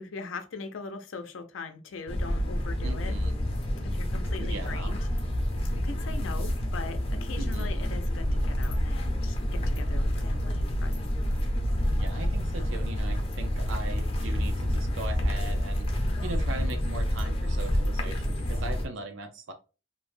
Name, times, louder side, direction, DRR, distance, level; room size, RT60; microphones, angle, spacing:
voice 1, 0.0-3.1 3.8-5.1 5.7-11.0, left 4 dB, 90° left, 0.5 m, -41 dB
sound 1, 2.1-18.9, equal, 30° left, 0.5 m, -28 dB
voice 2, 2.8-3.3 4.4-4.9 7.4-7.8 11.9-19.5, right 2 dB, 85° right, 0.5 m, -40 dB
2.6 x 2.1 x 3.1 m
head